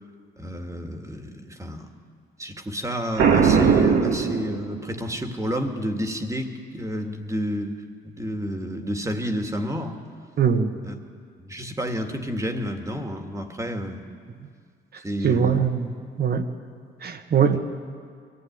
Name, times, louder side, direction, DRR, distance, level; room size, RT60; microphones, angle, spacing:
voice 1, 0.4-1.9 2.4-7.8 8.0-10.0 10.8-11.0 11.4-14.0 15.0-15.6, equal, 15° right, 4 dB, 2.2 m, -30 dB
Boom, 3.2-5.0, right 6 dB, 90° right, 2.1 m, -19 dB
voice 2, 10.4-10.8 15.2-15.9 16.2-16.5 17.0-17.6, right 7 dB, 50° right, 7 dB, 1.6 m, -21 dB
22.5 x 15.5 x 9.6 m, 2.1 s
cardioid pair, 90°, 20 cm